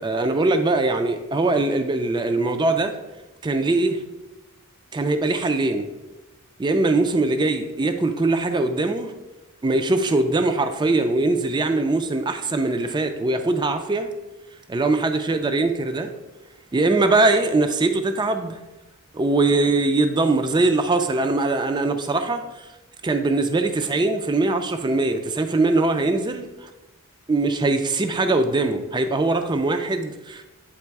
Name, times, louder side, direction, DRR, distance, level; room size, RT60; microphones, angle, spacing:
voice 1, 0.0-2.9 3.4-4.0 4.9-5.9 6.6-9.1 9.6-14.1 14.7-16.1 16.7-18.6 19.1-22.7 23.0-26.7 27.3-30.4, right 2 dB, 20° right, 8 dB, 0.4 m, -21 dB
8.4 x 3.0 x 4.6 m, 1.1 s
head